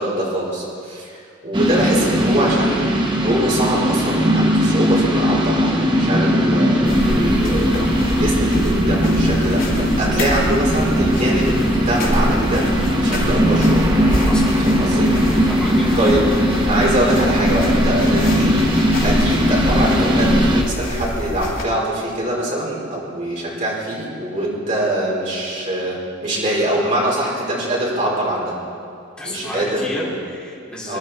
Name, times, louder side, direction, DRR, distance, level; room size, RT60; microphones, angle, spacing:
voice 1, 0.0-2.8 3.2-12.7 13.0-13.9 14.6-15.1 15.9-16.2 16.6-18.6 19.0-28.5 29.2-30.1 30.9-31.0, right 1 dB, 40° right, -5 dB, 4.8 m, -23 dB
sound 1, 1.5-20.6, equal, 20° right, 1.2 m, -18 dB
sound 2, 6.8-21.6, equal, 70° left, 3.0 m, -25 dB
voice 2, 14.2-14.8 15.4-16.1 29.2-31.0, left 1 dB, 5° left, -8 dB, 3.8 m, -31 dB
24.0 x 11.5 x 4.5 m, 2.4 s
head